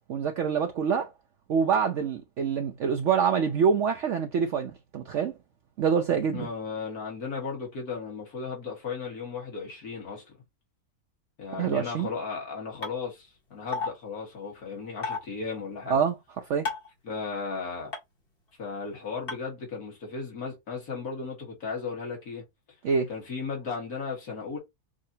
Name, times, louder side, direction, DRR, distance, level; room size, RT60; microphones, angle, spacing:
voice 1, 0.1-1.1 1.5-5.4 5.8-6.5 11.6-12.1 15.9-16.2 16.5-16.7 22.8-23.1, right 6 dB, 60° right, 0.9 m, -26 dB
voice 2, 6.3-10.4 11.4-16.0 17.0-17.9 18.6-22.4 23.1-24.6, left 5 dB, 75° left, 2.2 m, -35 dB
sound 1, 12.8-12.9 13.7-13.9 15.0-15.2 16.7-16.9 17.9-18.0 19.3-19.4, left 4 dB, 40° left, 1.8 m, -30 dB
6.0 x 2.8 x 2.7 m
omnidirectional pair, 1.6 m